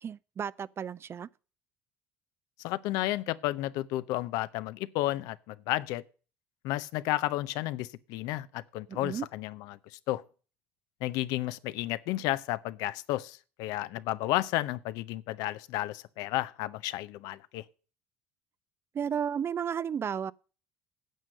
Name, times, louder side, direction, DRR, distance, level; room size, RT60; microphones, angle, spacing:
voice 1, 0.0-1.3 8.9-9.3 18.9-20.3, right 8 dB, 40° right, 0.4 m, -33 dB
voice 2, 2.6-6.0 6.6-9.8 10.1-10.2 11.0-17.6, left 16 dB, 70° left, 0.6 m, -32 dB
9.3 x 7.6 x 6.4 m
hypercardioid pair, 70°, 7 cm